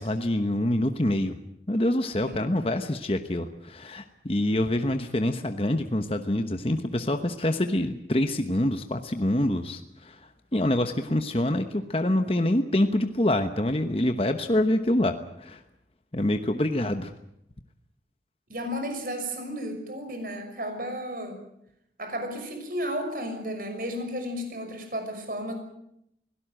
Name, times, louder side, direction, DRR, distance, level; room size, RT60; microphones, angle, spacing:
voice 1, 0.0-1.4 1.7-15.6 16.1-17.1, left 1 dB, 30° left, 7 dB, 1.1 m, -26 dB
voice 2, 18.5-21.4 22.0-25.5, equal, 50° right, 6 dB, 6.0 m, -33 dB
23.5 x 18.0 x 9.0 m, 0.78 s
head